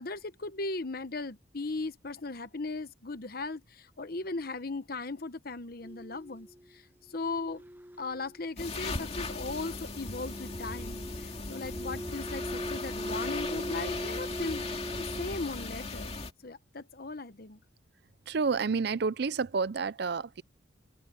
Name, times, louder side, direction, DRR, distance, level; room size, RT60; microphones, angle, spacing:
voice 1, 0.0-6.5 6.7-6.8 7.1-7.6 8.0-16.1 16.4-17.6, left 3 dB, 50° left, 1.0 m, -37 dB
sound 1, 5.8-6.7 7.2-8.4 8.8-15.3, equal, 10° right, 0.6 m, -41 dB
sound 2, 8.6-16.3, left 3 dB, 30° left, 2.5 m, -38 dB
voice 2, 18.3-20.4, right 5 dB, 55° right, 0.5 m, -29 dB
head